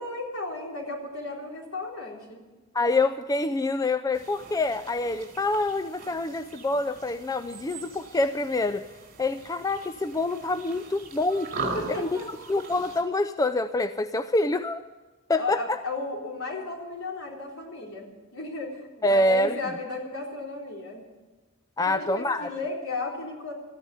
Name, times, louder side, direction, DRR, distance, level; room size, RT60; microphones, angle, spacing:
voice 1, 0.0-2.4 11.7-12.3 15.4-21.0 21.8-23.5, left 2 dB, 75° left, -1 dB, 3.9 m, -34 dB
voice 2, 2.7-8.9 9.2-11.5 12.0-12.1 12.5-14.8 15.3-15.8 19.0-19.6 21.8-22.5, left 2 dB, 15° left, 10 dB, 0.4 m, -26 dB
sound 1, 4.1-13.0, right 3 dB, 45° right, 2.9 m, -40 dB
14.0 x 9.7 x 9.4 m, 1.2 s
head